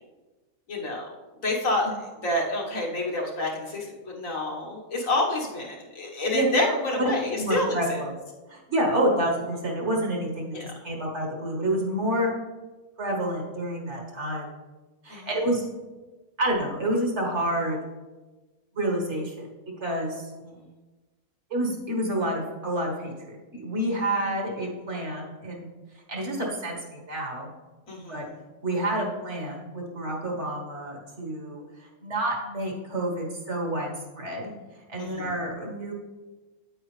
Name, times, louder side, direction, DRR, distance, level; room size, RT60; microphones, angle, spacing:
voice 1, 0.7-1.1 1.4-1.9 2.2-7.8 10.5-10.7 15.1-15.3 20.5-20.6 27.9-28.3 35.0-35.3, left 1 dB, 70° left, -1 dB, 1.9 m, -28 dB
voice 2, 7.4-8.1 8.5-12.3 13.0-14.5 15.0-15.6 16.4-17.8 18.7-19.5 19.8-20.3 21.5-25.7 26.1-27.5 28.1-28.2 28.6-34.5 34.9-35.9, right 1 dB, 55° right, 0 dB, 1.9 m, -28 dB
8.7 x 8.7 x 3.3 m, 1.2 s
omnidirectional pair, 1.4 m